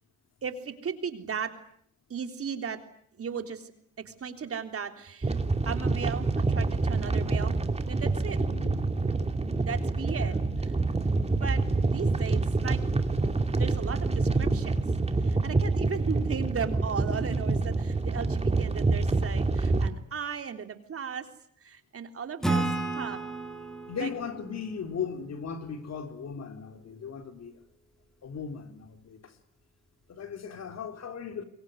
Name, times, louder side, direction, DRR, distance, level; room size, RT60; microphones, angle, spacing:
voice 1, 0.4-1.5 2.1-2.8 3.2-3.7 4.1-5.4 5.7-7.6 7.9-8.4 9.6-10.4 11.4-12.8 13.6-14.8 15.2-21.3 21.6-22.7 23.0-23.2 24.0-24.1, right 6 dB, 50° right, 3.5 m, -36 dB
sound 1, 5.2-19.9, right 3 dB, 20° right, 2.4 m, -27 dB
voice 2, 8.4-8.8 10.2-10.4 23.9-27.6 28.2-29.4 30.1-31.4, left 6 dB, 60° left, 3.8 m, -37 dB
Acoustic guitar / Strum, 22.4-25.9, right 2 dB, ahead, 4.6 m, -33 dB
26.5 x 23.0 x 9.6 m
cardioid pair, 90°, 30 cm